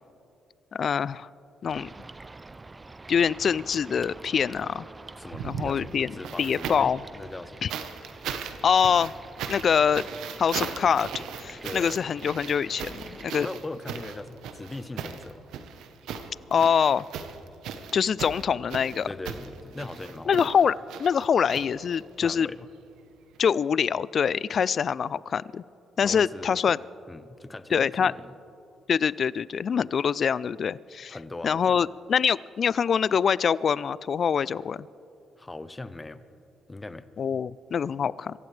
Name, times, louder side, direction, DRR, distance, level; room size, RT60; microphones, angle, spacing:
voice 1, 0.7-1.3 1.6-1.9 3.1-4.9 5.4-7.0 7.6-7.7 8.6-9.1 9.5-10.0 10.4-11.1 11.4-13.5 16.5-17.0 17.9-19.1 20.3-20.7 21.0-22.5 23.4-25.6 26.0-26.8 27.7-28.1 28.9-31.2 31.4-34.9 37.2-38.3, left 7 dB, 50° left, 20 dB, 0.3 m, -24 dB
sound 1, 1.7-13.4, right 3 dB, 20° right, 0.4 m, -46 dB
voice 2, 5.1-7.7 11.6-12.1 13.4-15.4 19.1-20.5 22.2-22.7 26.0-26.6 27.1-28.3 31.1-31.9 35.4-36.2 36.7-37.1, left 2 dB, 20° left, 13 dB, 0.7 m, -39 dB
sound 2, 5.3-7.0 7.7-22.2 23.3-23.4, right 7 dB, 85° right, 1.0 m, -38 dB
25.5 x 15.5 x 3.3 m, 2.7 s
cardioid pair, 90°, 0 cm